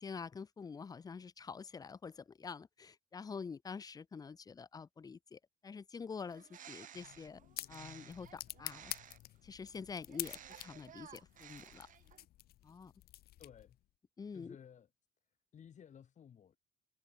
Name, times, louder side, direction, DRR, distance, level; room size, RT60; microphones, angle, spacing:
voice 1, 0.0-7.4 7.7-8.9 9.4-11.9 12.6-12.9 14.2-14.6, left 5 dB, 20° left, 0.6 m, -47 dB
Bird, 6.2-9.4 10.1-12.3, right 10 dB, 50° right, 1.2 m, -56 dB
sound 1, 6.9-13.8, left 15 dB, 65° left, 0.7 m, -48 dB
voice 2, 13.4-13.8 14.3-14.9 15.5-16.6, left 8 dB, 45° left, 4.8 m, -56 dB
cardioid pair, 110°, 17 cm